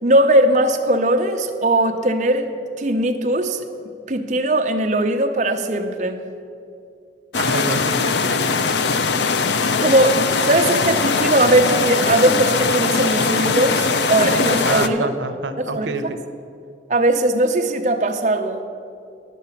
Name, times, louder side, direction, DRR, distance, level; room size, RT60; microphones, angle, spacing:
voice 1, 0.0-2.5 2.8-3.6 4.1-6.2 9.8-15.1 15.7-15.9 16.9-18.6, right 1 dB, 40° right, 5 dB, 0.7 m, -19 dB
sound 1, 7.3-14.9, left 4 dB, 75° left, 0.5 m, -20 dB
voice 2, 7.3-8.6 14.6-16.0, right 3 dB, 90° right, 10 dB, 0.7 m, -27 dB
11.0 x 6.7 x 7.0 m, 2.4 s
head